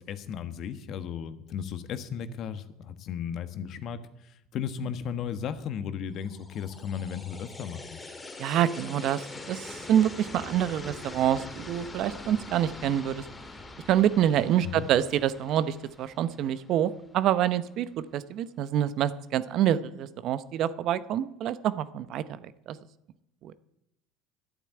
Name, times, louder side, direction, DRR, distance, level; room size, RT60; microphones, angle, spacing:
voice 1, 0.0-4.0 4.5-8.0 14.6-14.9, left 8 dB, 50° left, 11 dB, 1.2 m, -35 dB
sound 1, 6.2-17.3, left 3 dB, 20° left, 1.9 m, -44 dB
voice 2, 8.4-13.2 13.9-22.8 23.4-23.5, right 11 dB, 55° right, 15 dB, 0.8 m, -27 dB
11.0 x 9.2 x 8.9 m, 0.85 s
supercardioid pair, 100°, 0 cm